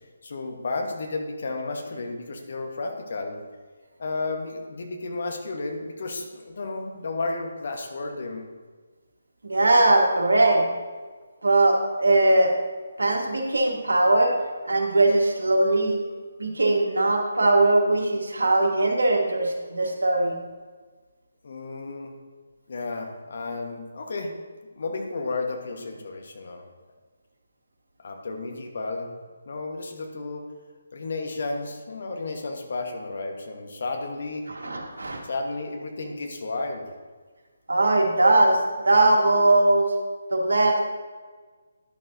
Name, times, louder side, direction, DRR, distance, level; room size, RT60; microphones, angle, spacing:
voice 1, 0.2-3.4 4.0-8.5 21.4-22.2 22.7-24.3 24.8-26.7 28.0-29.2 29.5-30.5 30.9-34.5 35.2-36.9, left 3 dB, 50° left, 4 dB, 1.2 m, -32 dB
voice 2, 9.4-10.7 11.4-12.5 13.0-14.3 14.6-16.0 16.4-20.4 34.5-35.2 37.7-38.6 38.8-39.9 40.3-40.8, right 2 dB, 70° right, 1 dB, 1.6 m, -20 dB
11.0 x 6.5 x 2.7 m, 1.4 s
figure-of-eight pair, 145°, 0 cm